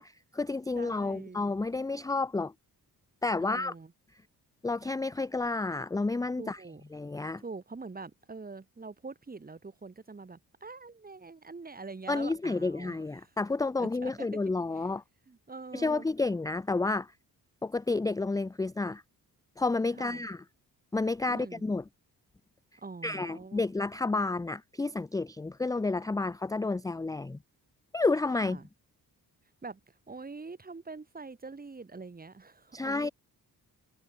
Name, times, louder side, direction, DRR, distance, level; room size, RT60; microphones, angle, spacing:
voice 1, 0.0-2.5 3.2-3.7 4.6-6.6 6.9-7.4 12.1-15.0 15.7-17.1 17.6-19.0 19.6-20.4 20.9-21.8 23.0-27.4 27.9-28.6 32.7-33.1, left 3 dB, 10° left, 0.5 m, -30 dB
voice 2, 0.7-1.4 3.4-3.9 6.4-6.8 7.4-13.3 13.8-14.3 14.7-14.8 15.3-16.0 20.0-20.2 21.3-21.6 22.8-23.7 28.4-28.7 29.6-33.1, right 4 dB, 25° right, 1.5 m, -44 dB
cardioid pair, 75°, 39 cm